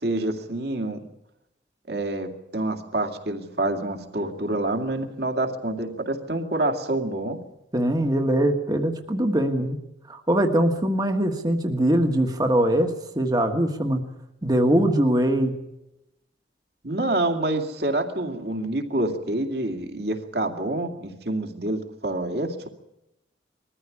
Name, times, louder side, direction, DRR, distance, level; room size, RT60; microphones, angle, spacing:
voice 1, 0.0-1.0 1.9-7.4 16.8-22.7, right 2 dB, 60° right, 5 dB, 2.3 m, -27 dB
voice 2, 7.7-9.8 10.1-14.1 14.4-15.6, right 1 dB, 20° right, 5 dB, 1.5 m, -22 dB
21.5 x 14.5 x 9.8 m, 0.88 s
head